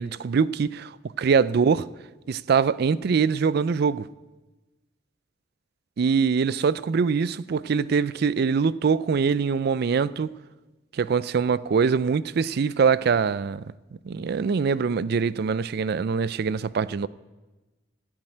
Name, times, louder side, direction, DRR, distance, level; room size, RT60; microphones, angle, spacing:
voice 1, 0.0-1.9 2.3-4.1 6.0-10.3 10.9-13.6 14.0-17.1, right 5 dB, 55° right, 0.4 m, -23 dB
14.0 x 7.4 x 9.0 m
head